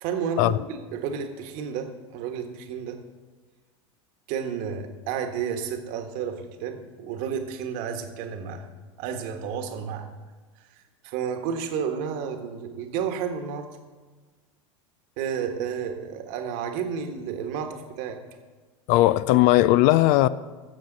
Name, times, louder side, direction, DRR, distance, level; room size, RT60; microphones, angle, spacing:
voice 1, 0.0-3.0 4.3-8.6 9.0-10.1 10.7-13.7 15.2-18.2, right 7 dB, 55° right, 1.3 m, -31 dB
voice 2, 18.9-20.3, left 16 dB, 55° left, 0.4 m, -18 dB
13.0 x 7.2 x 3.9 m
hypercardioid pair, 90°, 16 cm